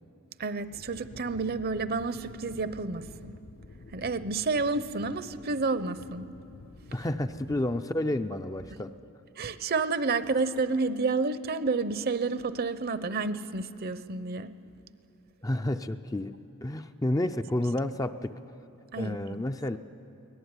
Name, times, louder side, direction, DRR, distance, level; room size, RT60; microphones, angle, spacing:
voice 1, 0.4-3.3 3.9-6.3 9.4-14.5 18.9-19.4, right 3 dB, 45° right, 13 dB, 0.7 m, -30 dB
sound 1, 0.7-7.8, left 2 dB, 65° left, 0.8 m, -49 dB
voice 2, 6.9-8.9 15.4-16.3 16.6-18.3 19.0-19.8, left 1 dB, 15° left, 8 dB, 0.5 m, -30 dB
24.0 x 18.0 x 9.7 m, 2.7 s
head